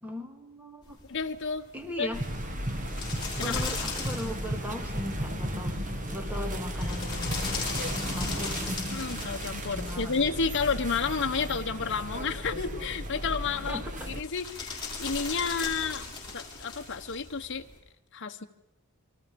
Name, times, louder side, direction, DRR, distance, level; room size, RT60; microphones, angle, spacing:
voice 1, 0.0-1.0 1.7-2.3 3.4-5.8 6.1-7.3 7.9-8.9 9.7-10.3 13.7-13.9, equal, 10° right, 4 dB, 2.6 m, -38 dB
sound 1, 0.8-17.8, left 4 dB, 20° left, 7.0 m, -40 dB
voice 2, 1.1-1.7 2.0-2.1 3.4-3.6 8.9-13.8 14.1-17.7 18.1-18.5, left 5 dB, 55° left, 4 dB, 1.1 m, -31 dB
sound 2, 2.1-14.2, equal, 35° right, 2.0 m, -34 dB
28.5 x 24.0 x 5.3 m, 0.85 s
head